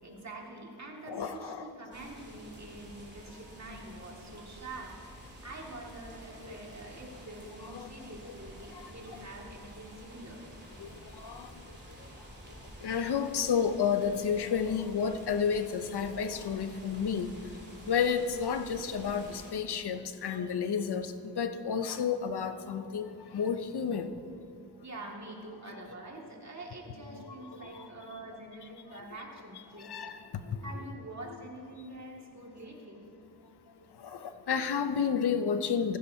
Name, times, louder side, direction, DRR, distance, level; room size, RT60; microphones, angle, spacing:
voice 1, 0.0-10.4 24.8-30.2 30.6-33.0, right 2 dB, 45° right, -1 dB, 2.2 m, -46 dB
voice 2, 1.1-1.7 6.4-6.6 7.6-7.9 8.2-8.3 8.7-8.9 10.8-11.5 12.0-12.1 12.8-17.3 17.9-24.1 27.1-28.1 28.9-29.0 29.8-30.6 34.0-36.0, left 7 dB, 85° left, 9 dB, 0.7 m, -31 dB
sound 1, 1.9-19.5, right 1 dB, 25° right, 2.8 m, -50 dB
16.0 x 15.5 x 2.8 m, 2.5 s
wide cardioid pair, 75°, 38 cm